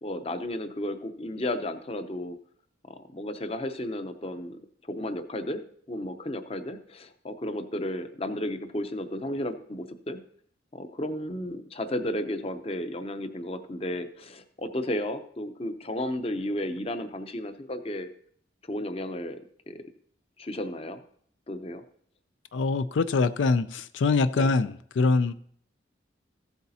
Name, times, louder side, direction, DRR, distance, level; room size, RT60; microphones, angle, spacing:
voice 1, 0.0-2.4 2.9-5.6 5.9-10.2 10.7-18.1 18.7-19.4 19.7-19.8 20.4-21.0 21.5-21.8 24.3-24.5, left 1 dB, 30° left, 0.7 m, -33 dB
voice 2, 22.5-25.3, left 3 dB, 80° left, 0.4 m, -24 dB
15.5 x 8.1 x 2.8 m
head